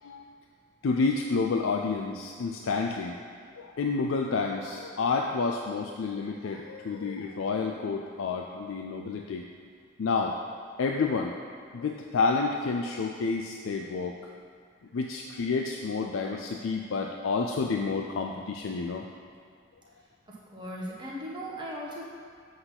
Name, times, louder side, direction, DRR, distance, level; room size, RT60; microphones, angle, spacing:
voice 1, 0.8-3.2 3.5-9.5 10.0-10.4 10.8-11.3 11.7-14.2 14.9-19.1, left 4 dB, 75° left, 2 dB, 0.4 m, -29 dB
voice 2, 20.5-22.0, equal, 20° right, -5 dB, 1.2 m, -37 dB
7.8 x 4.0 x 5.8 m, 2.2 s
head